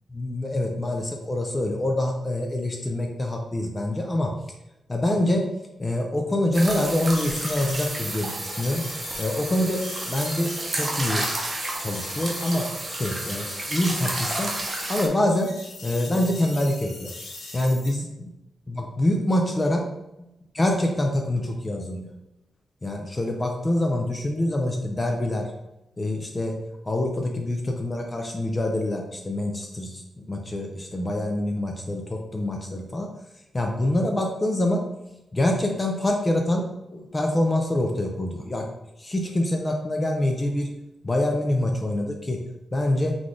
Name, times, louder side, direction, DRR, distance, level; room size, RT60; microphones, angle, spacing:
voice 1, 0.1-4.3 4.9-5.4 5.8-8.8 9.2-11.3 11.8-14.5 14.9-15.5 15.8-17.1 17.5-18.3 18.7-19.8 20.2-20.3 20.5-22.1 22.8-25.5 26.0-26.6 26.8-30.0 30.3-33.1 33.5-34.8 35.3-36.6 36.9-38.6 39.0-40.7 41.0-42.4 42.7-43.1, left 1 dB, 20° left, 2 dB, 0.4 m, -25 dB
sound 1, 6.5-15.1, right 1 dB, 20° right, 0.8 m, -31 dB
sound 2, 7.1-14.9 15.2-17.9, left 2 dB, 75° left, 1.1 m, -41 dB
3.9 x 3.1 x 3.7 m, 0.92 s
wide cardioid pair, 155°, 0 cm